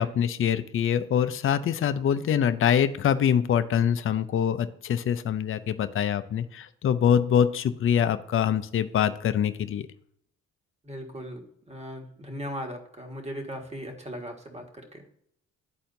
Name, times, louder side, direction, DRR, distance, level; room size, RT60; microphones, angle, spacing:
voice 1, 0.0-9.8, left 8 dB, 45° left, 11 dB, 0.6 m, -24 dB
voice 2, 10.8-14.6 14.9-15.0, equal, 20° right, 2 dB, 1.7 m, -38 dB
11.5 x 4.2 x 2.7 m, 0.69 s
cardioid pair, 90°, 30 cm